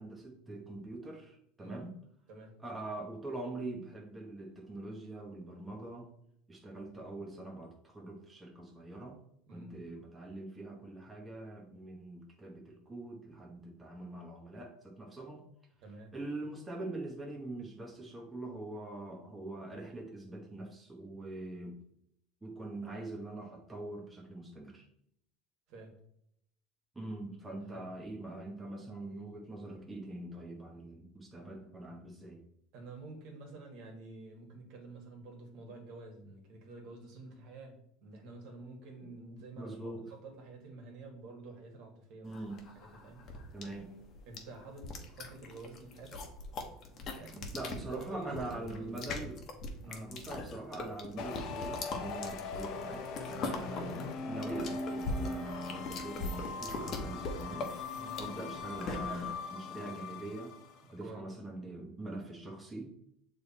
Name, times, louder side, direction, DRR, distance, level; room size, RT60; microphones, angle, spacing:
voice 1, 0.0-1.9 2.6-6.1 6.5-9.2 9.5-15.4 16.1-21.8 22.4-24.9 26.9-32.4 39.6-40.0 42.2-42.7 43.5-43.9 47.5-49.4 49.9-57.7 58.2-60.5 60.9-62.8, right 2 dB, 10° right, 0 dB, 1.1 m, -43 dB
voice 2, 15.8-16.1 25.7-26.0 27.6-27.9 32.7-42.4 43.0-43.2 44.3-46.2 47.1-47.5 47.9-49.0 49.8-50.1 53.4-53.7 57.9-58.2 61.0-61.3, right 3 dB, 60° right, 2 dB, 1.8 m, -49 dB
sound 1, 42.3-59.3, left 2 dB, 40° left, 1.2 m, -41 dB
sound 2, 51.2-60.8, left 4 dB, 55° left, 0.8 m, -41 dB
6.8 x 3.4 x 4.2 m, 0.72 s
supercardioid pair, 120°, 0 cm